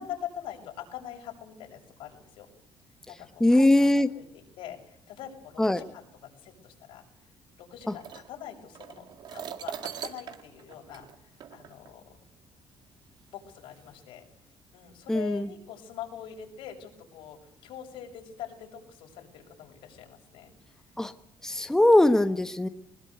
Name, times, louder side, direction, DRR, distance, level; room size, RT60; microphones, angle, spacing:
voice 1, 0.0-2.5 3.1-3.9 4.1-7.0 7.6-12.0 13.3-14.2 14.7-20.5, left 10 dB, 85° left, 2 dB, 7.2 m, -43 dB
voice 2, 3.4-4.1 5.6-5.8 15.1-15.5 21.0-21.1 21.4-22.7, left 1 dB, 5° left, 9 dB, 1.2 m, -21 dB
sound 1, 7.8-11.9 12.8-12.9 13.6-14.0, right 9 dB, 55° right, 2.1 m, -41 dB
21.0 x 20.5 x 8.0 m, 0.69 s
cardioid pair, 125°, 9 cm